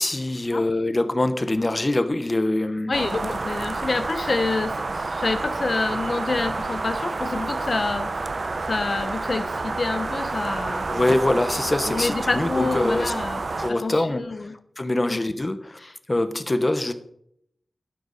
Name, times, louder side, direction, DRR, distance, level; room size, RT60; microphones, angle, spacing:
voice 1, 0.0-2.9 10.9-13.3 13.6-14.2 14.8-16.9, left 1 dB, 30° left, 10 dB, 1.0 m, -24 dB
voice 2, 2.9-10.9 11.9-14.5 15.1-15.2, left 3 dB, 60° left, 9 dB, 0.7 m, -27 dB
sound 1, 2.9-13.7, right 3 dB, 60° right, 0.8 m, -29 dB
12.5 x 10.0 x 4.1 m, 0.71 s
wide cardioid pair, 90°, 0 cm